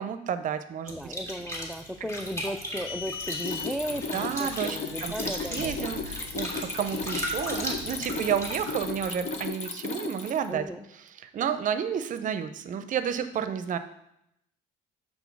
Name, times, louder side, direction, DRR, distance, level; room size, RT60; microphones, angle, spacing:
voice 1, 0.0-1.1 4.1-13.8, right 8 dB, 50° right, 11 dB, 0.6 m, -31 dB
sound 1, 0.9-8.7, equal, 15° left, 1.8 m, -37 dB
voice 2, 0.9-5.9 10.5-10.8, equal, ahead, 10 dB, 0.4 m, -36 dB
sound 2, 2.6-9.5, left 6 dB, 85° left, 0.7 m, -43 dB
Mechanisms, 3.1-10.5, left 4 dB, 45° left, 0.9 m, -35 dB
6.1 x 3.8 x 6.0 m, 0.80 s
cardioid pair, 110°, 17 cm